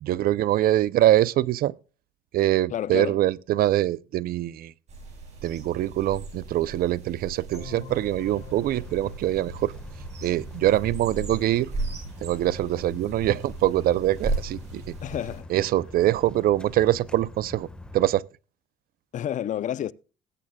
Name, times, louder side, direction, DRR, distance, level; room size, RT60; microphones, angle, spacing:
voice 1, 0.0-1.7 2.3-4.7 5.4-9.7 10.2-11.7 12.2-14.8 15.5-17.7 17.9-18.2, right 14 dB, 60° right, 0.5 m, -24 dB
voice 2, 2.7-3.2 15.0-15.5 19.1-19.9, left 10 dB, 50° left, 0.5 m, -30 dB
sound 1, 4.9-15.4, right 2 dB, 40° right, 7.4 m, -37 dB
sound 2, 7.5-10.5, left 8 dB, 85° left, 2.3 m, -46 dB
sound 3, 7.9-18.1, left 2 dB, 5° left, 1.4 m, -43 dB
20.5 x 8.6 x 2.3 m
cardioid pair, 110°, 17 cm